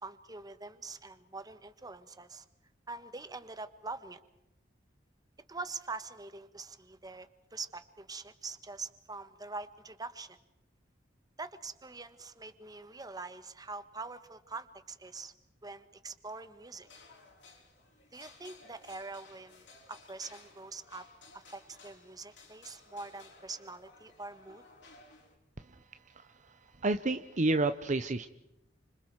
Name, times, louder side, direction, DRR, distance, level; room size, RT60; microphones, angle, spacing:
voice 1, 0.0-2.4 2.9-4.2 5.5-10.4 11.4-15.3 15.6-16.9 18.1-21.0 21.3-24.6, right 3 dB, 20° right, 11 dB, 1.3 m, -44 dB
sound 1, 16.8-25.4, left 3 dB, 70° left, 5.7 m, -57 dB
voice 2, 26.1-28.3, right 2 dB, 40° right, 10 dB, 0.8 m, -31 dB
30.0 x 26.5 x 4.7 m, 0.89 s
head